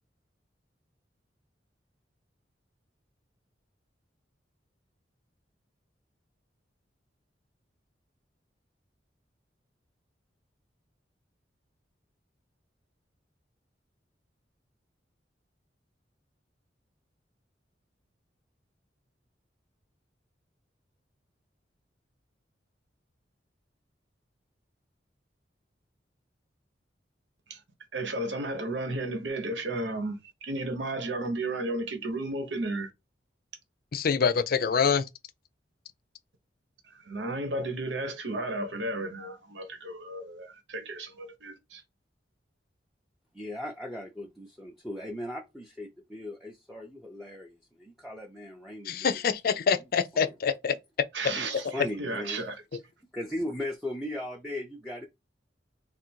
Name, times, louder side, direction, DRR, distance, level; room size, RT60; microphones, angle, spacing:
voice 1, 27.9-32.9 36.8-41.8 51.1-52.6, right 2 dB, 85° right, 1.0 m, -33 dB
voice 2, 33.9-35.1 48.9-50.7, left 6 dB, 55° left, 0.4 m, -25 dB
voice 3, 43.3-49.2 50.1-50.3 51.4-51.5 51.7-52.4 53.1-55.1, left 1 dB, ahead, 0.5 m, -38 dB
3.4 x 2.5 x 4.4 m
head